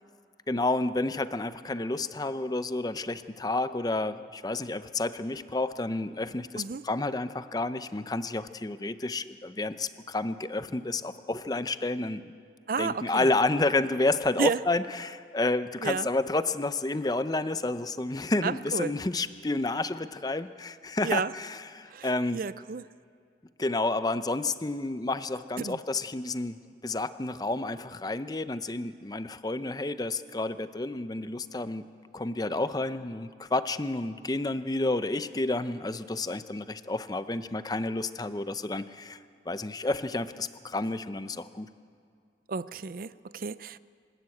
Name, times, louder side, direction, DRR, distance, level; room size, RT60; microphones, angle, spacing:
voice 1, 0.5-12.2 12.8-22.4 23.6-26.6 26.8-31.9 32.1-39.2 39.5-41.7, left 2 dB, 20° left, 0.6 m, -30 dB
voice 2, 12.7-13.3 14.4-14.7 15.8-16.1 18.4-18.9 21.0-21.3 21.9-22.9 25.6-25.8 42.5-43.8, right 5 dB, 50° right, 0.4 m, -32 dB
26.5 x 12.5 x 8.5 m
head